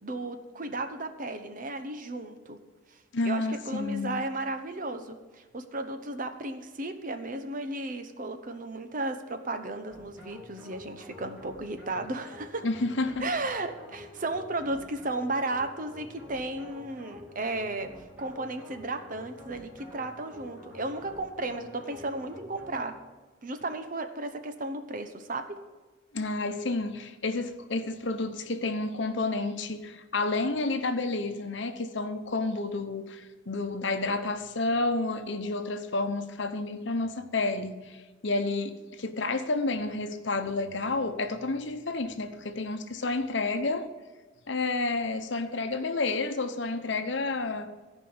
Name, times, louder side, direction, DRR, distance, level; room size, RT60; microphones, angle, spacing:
voice 1, 0.0-2.6 2.9-12.7 13.2-17.9 18.2-23.0 23.4-25.6, right 2 dB, 45° right, 0.9 m, -34 dB
voice 2, 3.1-4.2 12.6-13.3 26.1-43.9 44.5-47.7, left 3 dB, 65° left, 0.9 m, -30 dB
sound 1, 9.9-23.1, left 2 dB, 10° right, 3.0 m, -49 dB
14.0 x 5.4 x 7.9 m
head